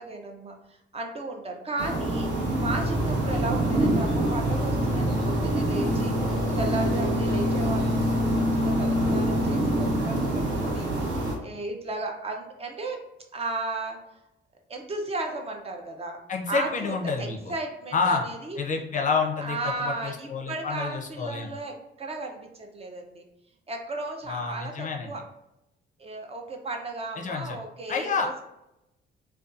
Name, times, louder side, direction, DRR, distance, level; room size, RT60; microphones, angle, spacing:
voice 1, 0.0-13.0 13.3-14.0 14.7-16.2 16.5-18.6 19.4-23.2 23.7-25.2 26.0-28.4, right 2 dB, 30° right, 2 dB, 0.4 m, -35 dB
sound 1, 1.8-11.3, right 1 dB, 65° right, 0.8 m, -25 dB
voice 2, 16.3-17.4 17.9-18.2 18.6-21.5 24.3-25.1 27.2-27.6 27.9-28.4, left 5 dB, 40° left, 1 dB, 0.4 m, -28 dB
2.5 x 2.3 x 2.4 m, 0.88 s
cardioid pair, 90°, 20 cm